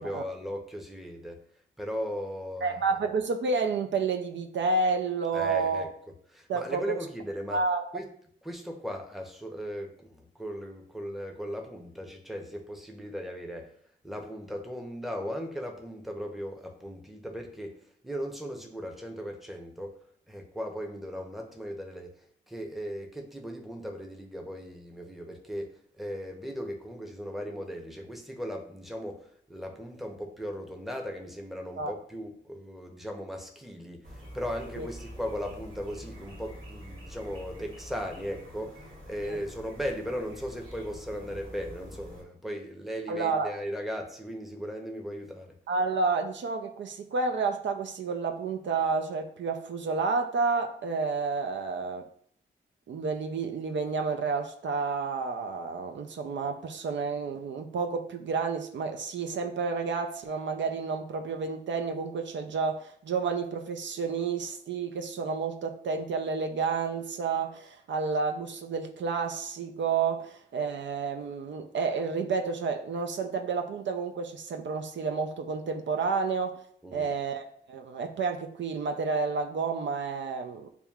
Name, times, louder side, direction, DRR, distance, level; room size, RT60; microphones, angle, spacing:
voice 1, 0.0-1.4 1.8-2.8 5.3-5.9 6.3-7.6 7.9-8.1 8.4-13.7 14.0-17.8 18.0-20.0 20.3-45.5 76.8-77.1, equal, ahead, 2 dB, 0.7 m, -37 dB
voice 2, 2.6-5.8 6.5-7.0 7.5-7.8 31.8-31.9 34.8-34.9 39.2-39.4 43.1-43.5 45.7-52.1 52.9-76.6 76.9-80.7, right 4 dB, 65° right, 5 dB, 0.4 m, -30 dB
sound 1, 34.0-42.2, equal, 80° right, 1.6 m, -46 dB
6.8 x 2.3 x 2.3 m, 0.63 s
cardioid pair, 65°, 20 cm